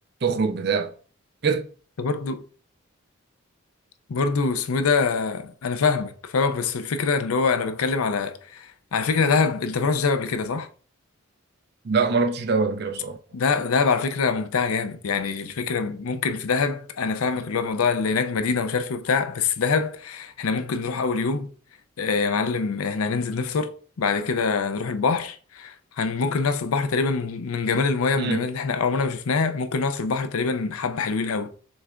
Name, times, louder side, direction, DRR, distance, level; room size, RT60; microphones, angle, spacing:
voice 1, 0.2-0.9 1.4-1.7 11.8-13.2 28.2-28.4, right 4 dB, 50° right, 0.5 m, -23 dB
voice 2, 2.0-2.4 4.1-10.7 13.3-21.5 22.0-31.5, left 4 dB, 90° left, 0.5 m, -24 dB
6.2 x 3.3 x 2.4 m
head